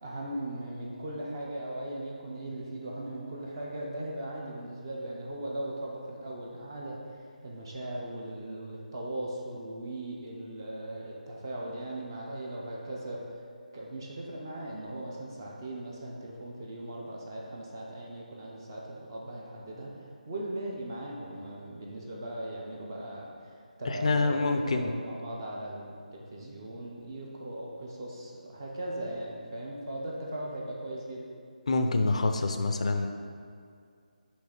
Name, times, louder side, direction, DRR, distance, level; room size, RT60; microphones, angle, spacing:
voice 1, 0.0-7.2 7.4-13.2 13.7-19.9 20.3-23.5 23.8-24.4 24.7-31.3, right 1 dB, 25° right, -3 dB, 0.6 m, -38 dB
voice 2, 23.9-24.9 31.7-33.1, left 3 dB, 45° left, 6 dB, 0.4 m, -26 dB
6.1 x 3.1 x 5.0 m, 2.3 s
figure-of-eight pair, 170°, 5 cm